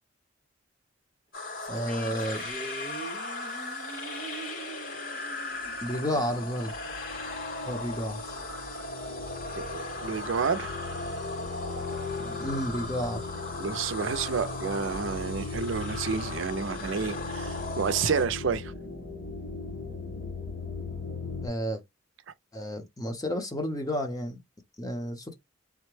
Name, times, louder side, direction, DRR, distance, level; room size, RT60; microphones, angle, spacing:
sound 1, 1.3-18.2, left 2 dB, 70° left, 2.2 m, -38 dB
sound 2, 1.6-6.9, right 3 dB, 45° left, 1.6 m, -44 dB
voice 1, 1.7-2.4 5.8-6.7 7.7-8.4 12.2-13.2 21.4-21.8 22.5-24.4 24.8-25.3, equal, 20° left, 0.7 m, -31 dB
sound 3, 5.6-21.5, left 3 dB, 85° left, 1.0 m, -39 dB
voice 2, 9.6-10.7 13.6-18.7, right 6 dB, 70° right, 0.4 m, -30 dB
3.4 x 2.1 x 3.2 m
head